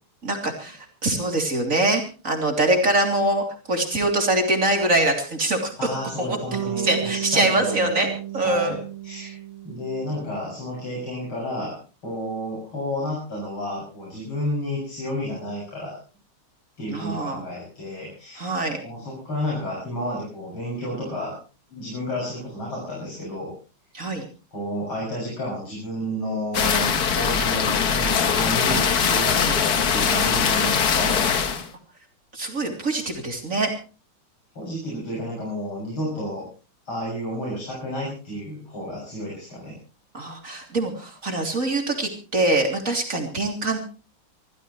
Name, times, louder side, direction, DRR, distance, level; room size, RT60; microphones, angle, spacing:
voice 1, 0.2-5.7 6.2-6.4 6.8-8.1 8.3-8.8 16.9-17.4 18.4-18.8 23.9-24.2 29.3-29.6 32.3-33.7 40.1-43.9, right 2 dB, 35° right, 3 dB, 3.5 m, -24 dB
voice 2, 5.8-8.1 8.4-9.4 9.6-11.8 12.0-16.0 16.8-18.5 18.8-21.3 21.7-23.5 24.5-31.6 34.6-36.5 36.8-39.7, equal, 75° left, -4 dB, 7.9 m, -31 dB
Bass guitar, 6.5-10.6, right 10 dB, 70° right, 2.1 m, -33 dB
sound 1, 26.5-31.7, left 6 dB, 50° left, 1.6 m, -21 dB
26.0 x 14.5 x 3.2 m, 0.35 s
omnidirectional pair, 2.3 m